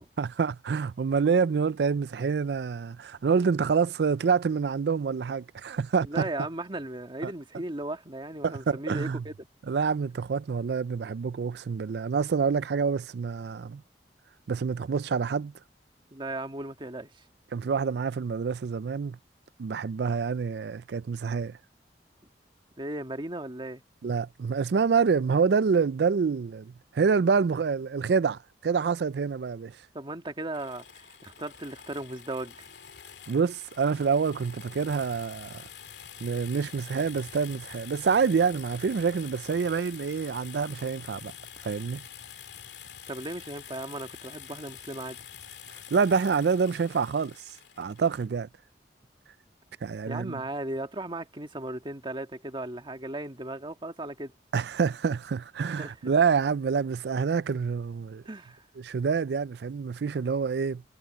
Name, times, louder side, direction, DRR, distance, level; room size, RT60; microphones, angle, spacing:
voice 1, 0.2-6.3 7.2-7.3 8.4-9.2 9.7-13.8 14.5-15.5 17.5-19.2 19.6-21.6 24.0-29.8 33.3-35.6 36.2-41.3 41.6-42.0 45.9-47.3 47.8-48.5 49.8-50.4 54.5-58.2 58.8-60.8, right 5 dB, 65° right, 0.4 m, -27 dB
voice 2, 6.0-9.5 16.1-17.1 22.8-23.8 29.9-32.5 43.1-45.2 50.0-54.3 55.8-56.1 58.2-58.6, right 1 dB, 30° right, 1.7 m, -36 dB
sound 1, 30.5-48.3, left 9 dB, 75° left, 2.5 m, -46 dB
head